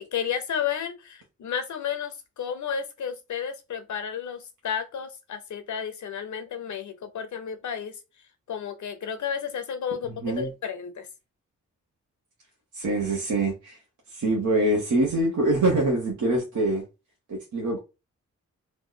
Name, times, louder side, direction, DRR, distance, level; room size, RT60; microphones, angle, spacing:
voice 1, 0.0-8.0 8.5-11.1, left 7 dB, 75° left, 0.7 m, -32 dB
voice 2, 12.7-13.8 14.1-16.8 17.3-17.8, right 2 dB, 80° right, 0.9 m, -24 dB
3.0 x 2.0 x 3.7 m
cardioid pair, 50°, 30 cm